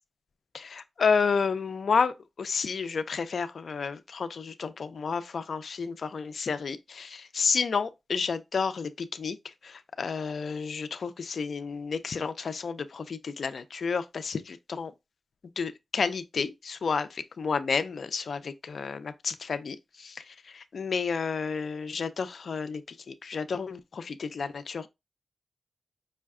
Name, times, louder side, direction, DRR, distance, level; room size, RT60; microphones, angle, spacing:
voice 1, 0.5-14.9 15.6-24.9, left 5 dB, 70° left, 0.5 m, -31 dB
5.5 x 2.2 x 3.6 m
cardioid pair, 70°, 0 cm